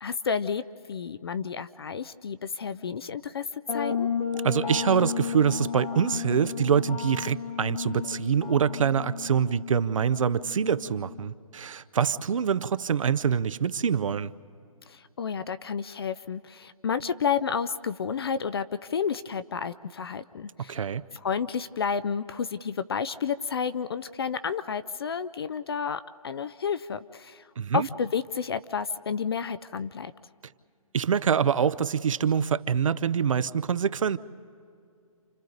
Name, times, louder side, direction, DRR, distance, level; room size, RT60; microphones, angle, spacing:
voice 1, 0.0-0.6 0.9-4.1 14.9-20.8 21.2-27.5 27.7-30.1, left 6 dB, 45° left, 14 dB, 0.4 m, -31 dB
sound 1, 3.7-11.3, left 6 dB, 80° left, 1.7 m, -33 dB
voice 2, 4.4-14.3 20.7-21.0 27.6-27.9 30.9-34.2, right 7 dB, 65° right, 16 dB, 0.6 m, -25 dB
28.5 x 28.0 x 4.0 m, 2.4 s
hypercardioid pair, 160°, 18 cm